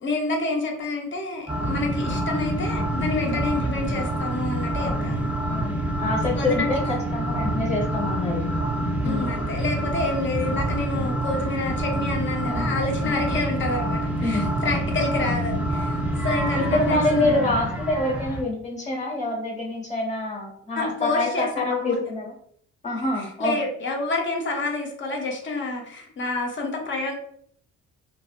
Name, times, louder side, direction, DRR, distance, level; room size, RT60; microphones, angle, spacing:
voice 1, 0.0-5.3 6.3-6.7 9.0-17.4 20.8-22.1 23.4-27.1, left 3 dB, 40° left, 1 dB, 0.7 m, -28 dB
sound 1, 1.5-18.4, right 1 dB, 5° right, 0.5 m, -27 dB
voice 2, 4.8-8.4 9.0-9.4 12.4-12.8 13.0-13.2 14.2-14.5 16.5-22.3 22.8-23.6, left 2 dB, 25° left, -2 dB, 1.2 m, -26 dB
2.6 x 2.1 x 2.4 m, 0.65 s
cardioid pair, 90°, 30 cm